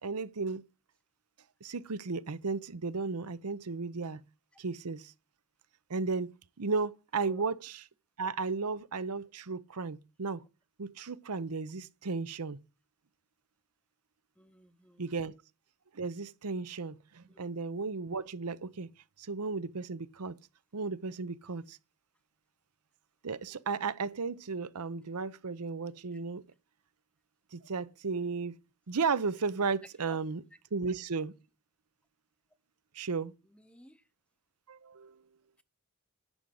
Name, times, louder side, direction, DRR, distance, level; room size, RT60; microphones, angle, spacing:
voice 1, 0.0-0.6 1.6-4.2 4.6-5.1 5.9-6.3 6.6-7.9 8.2-10.4 10.8-12.6 15.0-15.3 15.9-18.9 19.2-20.4 20.7-21.8 23.2-26.4 27.5-28.6 28.9-30.5 30.7-31.3 32.9-33.3 34.7-35.2, right 4 dB, 85° right, 0.8 m, -34 dB
voice 2, 14.4-15.0 17.3-17.4 30.1-30.2 33.7-34.0, equal, 5° left, 0.7 m, -55 dB
11.0 x 5.2 x 7.6 m
head